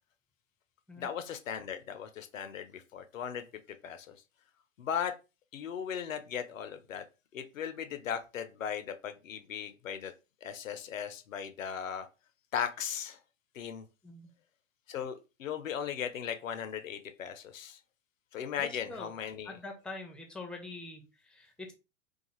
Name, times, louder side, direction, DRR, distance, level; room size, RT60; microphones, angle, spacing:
voice 1, 0.9-4.2 4.8-5.1 5.5-7.0 7.3-10.1 10.4-12.1 12.5-13.2 13.5-13.8 14.9-17.8 18.3-19.5, left 8 dB, 85° left, 0.5 m, -37 dB
voice 2, 18.6-19.1 19.4-21.7, left 2 dB, ahead, 0.4 m, -44 dB
2.4 x 2.3 x 2.9 m
hypercardioid pair, 100°, 38 cm